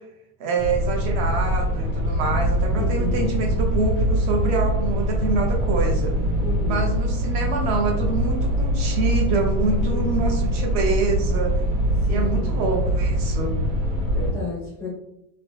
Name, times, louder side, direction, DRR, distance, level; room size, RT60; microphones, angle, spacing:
voice 1, 0.4-6.2 6.7-11.5 12.1-13.5, right 4 dB, 50° right, 2 dB, 0.7 m, -26 dB
sound 1, 0.6-14.3, equal, 25° right, 1.2 m, -23 dB
voice 2, 2.7-3.2 6.4-6.9 9.9-10.0 12.1-12.5 14.1-14.9, left 4 dB, 5° left, -7 dB, 0.4 m, -33 dB
2.9 x 2.0 x 3.0 m, 0.84 s
supercardioid pair, 150°, 45 cm